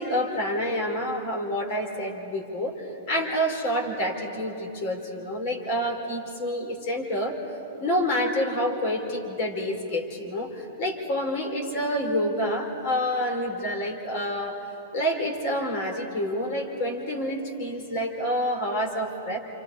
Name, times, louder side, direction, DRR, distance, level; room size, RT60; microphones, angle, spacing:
voice 1, 0.0-7.4 7.8-14.6 14.9-19.4, equal, 45° left, 4 dB, 4.0 m, -28 dB
29.0 x 27.5 x 4.8 m, 2.9 s
figure-of-eight pair, 100°, 0 cm